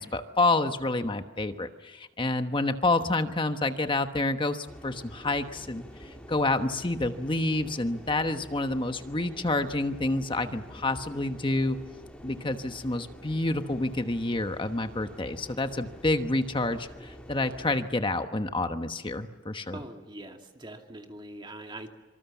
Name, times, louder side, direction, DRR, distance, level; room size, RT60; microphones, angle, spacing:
voice 1, 0.0-11.8 12.2-19.8, left 2 dB, 25° left, 8 dB, 1.2 m, -28 dB
sound 1, 4.7-17.8, equal, 5° left, 3.5 m, -47 dB
voice 2, 19.7-21.9, right 1 dB, 25° right, 3 dB, 2.4 m, -43 dB
26.5 x 25.5 x 7.2 m, 1.2 s
head